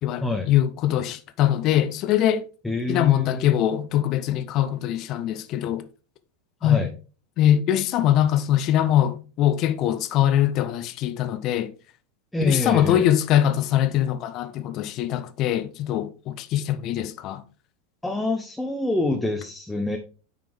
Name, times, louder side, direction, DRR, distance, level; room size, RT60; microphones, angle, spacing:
voice 1, 0.0-2.4 2.9-5.8 6.6-6.9 7.4-11.7 12.4-17.4, left 11 dB, 45° left, 0.8 m, -22 dB
voice 2, 2.6-3.6 6.6-6.9 12.3-13.0 18.0-20.0, left 2 dB, 5° left, 0.9 m, -26 dB
9.3 x 5.1 x 3.5 m
figure-of-eight pair, 85°, 0 cm